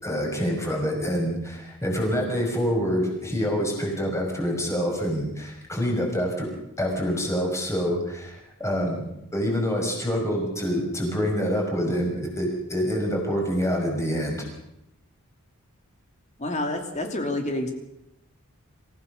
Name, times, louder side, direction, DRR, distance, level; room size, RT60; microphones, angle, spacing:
voice 1, 0.0-6.5 6.8-14.4, equal, 15° left, 0 dB, 6.0 m, -26 dB
voice 2, 16.4-17.7, left 1 dB, 30° left, 4 dB, 2.9 m, -28 dB
26.5 x 16.0 x 6.7 m, 0.84 s
head